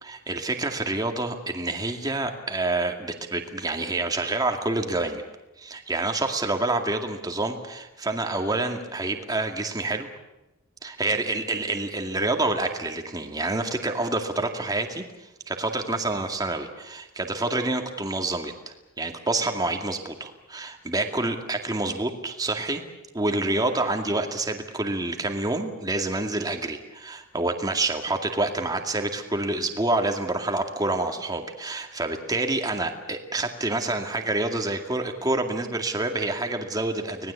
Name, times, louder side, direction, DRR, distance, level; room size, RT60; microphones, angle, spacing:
voice 1, 0.0-5.2 5.6-10.1 10.8-15.0 15.5-22.8 23.1-37.3, right 2 dB, 20° right, 4 dB, 2.2 m, -27 dB
25.5 x 19.5 x 8.3 m, 0.99 s
head